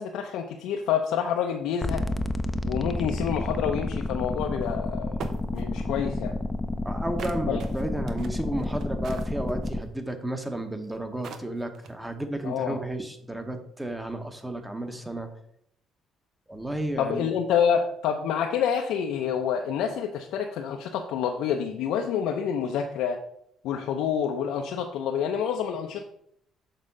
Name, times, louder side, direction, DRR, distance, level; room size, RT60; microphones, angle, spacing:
voice 1, 0.0-2.1 2.7-5.1 5.5-6.4 7.5-7.6 12.4-12.8 17.0-23.2 23.6-26.0, left 8 dB, 80° left, 2 dB, 0.5 m, -27 dB
sound 1, 1.8-9.8, left 1 dB, 15° left, 0.5 m, -30 dB
sound 2, 4.6-4.7 5.2-5.6 7.2-9.8 10.8-10.9 11.2-12.1, right 6 dB, 65° right, 0.7 m, -41 dB
voice 2, 6.8-15.3 16.5-17.3, right 1 dB, 10° right, 7 dB, 1.0 m, -32 dB
6.7 x 3.6 x 5.4 m, 0.71 s
cardioid pair, 90°, 0 cm